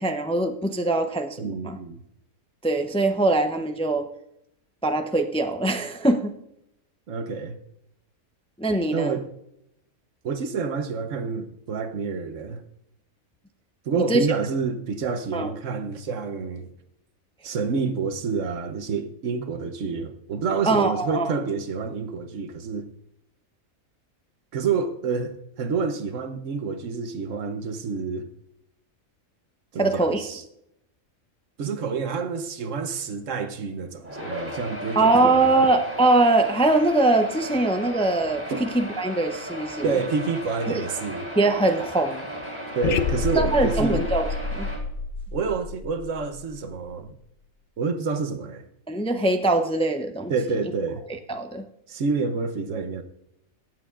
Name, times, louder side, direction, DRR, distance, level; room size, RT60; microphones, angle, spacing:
voice 1, 0.0-1.8 2.6-4.1 4.8-6.3 8.6-9.2 14.0-14.3 15.3-15.5 20.7-21.3 29.8-30.2 35.0-39.9 40.7-40.9 41.4-42.3 43.4-44.3 44.5-44.7 48.9-50.3 51.3-51.6, right 2 dB, 10° left, 0.3 m, -22 dB
voice 2, 1.4-2.0 7.1-7.6 8.9-9.3 10.2-12.6 13.8-16.7 17.4-22.9 24.5-28.3 29.7-30.4 31.6-35.6 38.5-38.6 39.8-41.3 42.7-44.0 45.3-47.2 47.8-48.7 50.3-51.0 51.9-53.0, right 5 dB, 65° right, 1.1 m, -28 dB
sound 1, 34.0-44.8, equal, 10° right, 3.7 m, -35 dB
sound 2, 42.8-46.9, left 4 dB, 60° left, 0.5 m, -29 dB
17.0 x 7.6 x 2.5 m
omnidirectional pair, 1.5 m